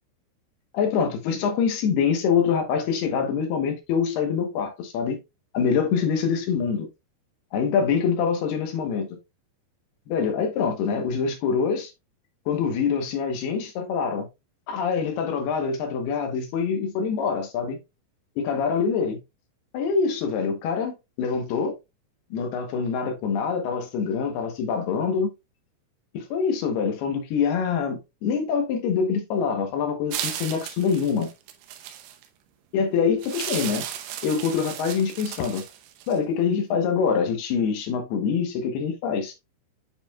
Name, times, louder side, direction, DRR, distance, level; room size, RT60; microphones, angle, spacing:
voice 1, 0.7-5.2 5.5-6.9 7.5-9.2 10.1-11.9 12.5-14.3 14.7-17.8 18.4-19.2 19.7-21.7 22.3-25.3 26.1-31.3 32.7-33.8 34.2-35.6 36.1-39.3, left 6 dB, 70° left, 2.8 m, -25 dB
sound 1, 30.1-32.3 33.2-36.2, right 11 dB, 75° right, 2.7 m, -35 dB
9.0 x 5.0 x 2.3 m
omnidirectional pair, 5.3 m